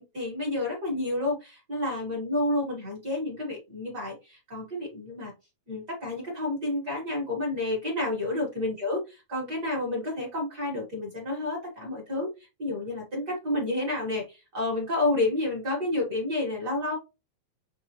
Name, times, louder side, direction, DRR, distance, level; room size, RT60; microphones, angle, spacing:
voice 1, 0.0-5.3 5.7-12.3 12.6-16.9, left 2 dB, 50° right, -2 dB, 1.2 m, -30 dB
7.2 x 2.5 x 2.9 m, 0.27 s
omnidirectional pair, 3.8 m